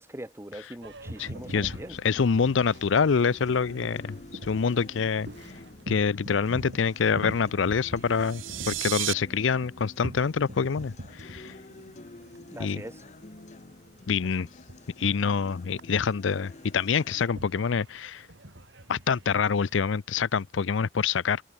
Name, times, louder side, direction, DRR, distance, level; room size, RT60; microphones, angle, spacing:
voice 1, 0.0-2.0 12.5-13.0, right 1 dB, 15° right, 1.3 m, -42 dB
Boat Water vehicle, 0.8-19.8, equal, 60° right, 6.6 m, -45 dB
voice 2, 1.2-1.8 2.0-4.2 4.4-5.3 5.9-11.5 12.6-12.8 14.1-14.5 15.0-18.3 18.9-21.4, left 6 dB, 70° left, 0.5 m, -26 dB
Acoustic guitar, 1.2-17.2, left 2 dB, 35° left, 1.1 m, -49 dB
sound 1, 8.1-9.1, right 17 dB, 75° right, 0.6 m, -32 dB
head